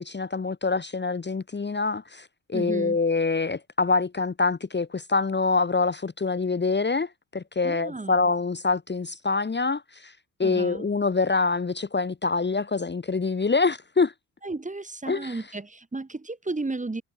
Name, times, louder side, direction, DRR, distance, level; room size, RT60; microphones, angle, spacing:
voice 1, 0.0-10.1 10.4-14.1 15.1-15.3, left 4 dB, 25° left, 1.2 m, -25 dB
voice 2, 2.5-3.0 7.6-8.3 10.4-10.9 14.4-17.0, right 3 dB, 15° right, 1.6 m, -33 dB
hypercardioid pair, 50°, 45 cm